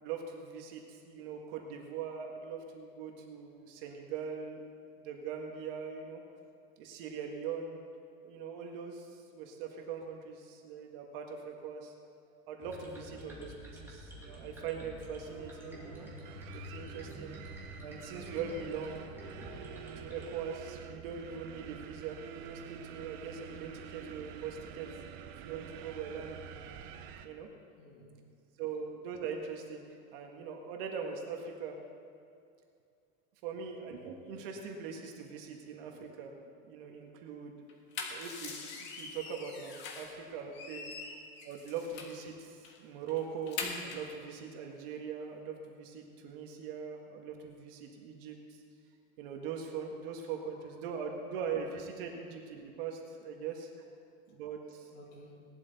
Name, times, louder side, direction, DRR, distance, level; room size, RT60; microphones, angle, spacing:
voice 1, 0.0-4.6 5.0-6.2 6.8-7.8 8.2-11.9 12.5-16.1 16.5-17.4 17.8-19.1 20.0-25.0 25.3-26.4 27.2-27.5 28.6-29.8 30.1-31.8 33.4-36.3 36.6-37.5 38.1-40.9 41.4-48.6 49.2-53.7 54.3-54.9, right 6 dB, 70° right, 2 dB, 1.7 m, -41 dB
sound 1, 12.6-20.3, left 1 dB, 10° right, 2.3 m, -48 dB
sound 2, 14.2-27.3, right 8 dB, 55° right, 0.9 m, -48 dB
voice 2, 27.8-28.2 28.7-28.9 40.0-40.1 41.0-41.6 50.5-50.7 54.0-55.4, left 1 dB, 70° left, -4 dB, 4.1 m, -58 dB
sound 3, 37.7-40.2 40.5-42.2 42.6-42.8 43.1-44.1, left 4 dB, 40° left, 1.6 m, -42 dB
18.0 x 12.0 x 4.1 m, 2.5 s
cardioid pair, 175°, 29 cm